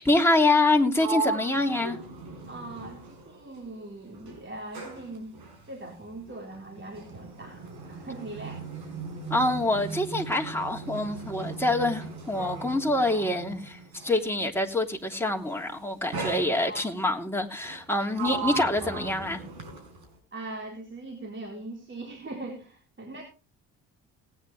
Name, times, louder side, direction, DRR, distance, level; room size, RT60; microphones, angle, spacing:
voice 1, 0.0-2.0 9.3-19.4, left 2 dB, 5° left, 3.0 m, -25 dB
Sliding door, 0.5-3.8 4.1-14.3 15.2-15.5 16.1-17.0 17.6-20.2, right 4 dB, 80° right, 4.8 m, -38 dB
voice 2, 2.5-5.3 5.7-8.6 16.7-16.8 20.3-23.2, right 2 dB, 30° right, 4.0 m, -40 dB
19.0 x 9.8 x 3.2 m
hypercardioid pair, 55°, 39 cm